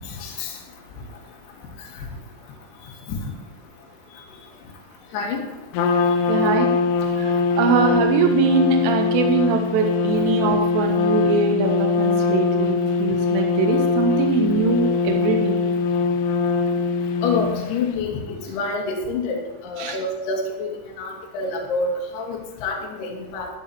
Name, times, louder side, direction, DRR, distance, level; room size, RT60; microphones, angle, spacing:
voice 1, 0.2-0.5 3.1-3.2 5.1-5.4 17.2-23.5, left 3 dB, 70° left, 0 dB, 3.3 m, -27 dB
Trumpet, 5.7-17.9, left 4 dB, 85° left, 2.4 m, -22 dB
voice 2, 6.3-6.7 7.2-15.6 19.8-20.0, right 5 dB, 80° right, 2 dB, 2.9 m, -22 dB
12.0 x 11.5 x 2.9 m, 1.1 s
omnidirectional pair, 5.4 m